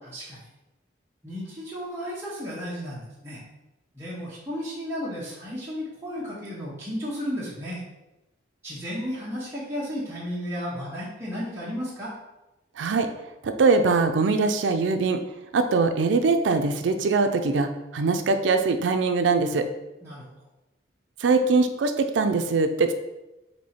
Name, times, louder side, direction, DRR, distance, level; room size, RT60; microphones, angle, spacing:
voice 1, 0.0-0.4 1.2-3.4 3.9-7.8 8.6-12.1 20.0-20.2, equal, 15° right, -9 dB, 1.0 m, -33 dB
voice 2, 12.8-13.1 13.4-15.2 15.5-19.6 21.2-22.9, right 4 dB, 80° right, 7 dB, 0.4 m, -22 dB
4.5 x 2.7 x 4.3 m, 1.0 s
head